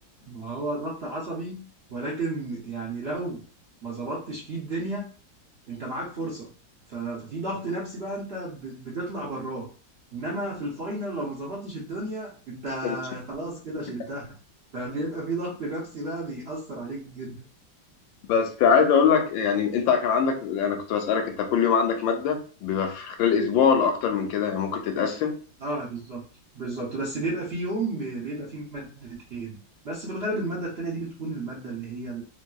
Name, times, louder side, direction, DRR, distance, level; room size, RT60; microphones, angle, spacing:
voice 1, 0.3-1.6 1.9-3.4 3.8-5.1 5.7-6.5 6.9-9.7 10.1-14.3 14.7-17.4 25.6-26.2 26.5-29.6 29.8-32.2, right 2 dB, 55° right, -5 dB, 0.7 m, -32 dB
voice 2, 18.3-25.3, left 6 dB, 85° left, 4 dB, 1.3 m, -23 dB
3.2 x 2.7 x 2.3 m, 0.39 s
omnidirectional pair, 2.0 m